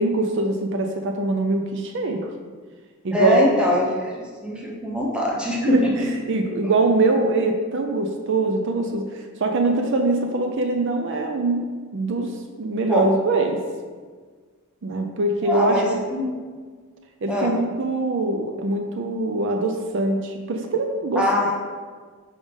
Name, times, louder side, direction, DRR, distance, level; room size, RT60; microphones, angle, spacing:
voice 1, 0.0-2.3 3.0-3.4 5.6-13.6 14.8-16.0 17.2-21.5, right 2 dB, 55° right, 3 dB, 0.5 m, -23 dB
voice 2, 3.1-6.1 12.9-13.1 15.4-16.3 17.3-17.6 21.2-21.5, equal, 5° right, -3 dB, 0.9 m, -22 dB
5.0 x 3.6 x 5.2 m, 1.5 s
head